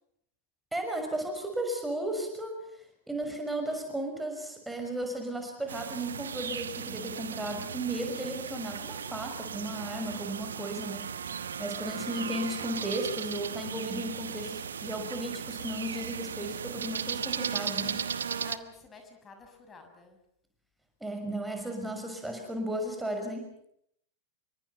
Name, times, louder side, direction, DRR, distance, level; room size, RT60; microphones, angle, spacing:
voice 1, 0.7-2.5 3.1-11.0 11.6-18.0 21.0-23.5, right 1 dB, 5° right, 4 dB, 6.1 m, -35 dB
sound 1, 5.7-18.6, right 7 dB, 70° right, 1.2 m, -36 dB
voice 2, 18.4-20.2, left 4 dB, 20° left, 5 dB, 6.5 m, -50 dB
28.5 x 24.5 x 5.9 m, 0.71 s
figure-of-eight pair, 90°, 0 cm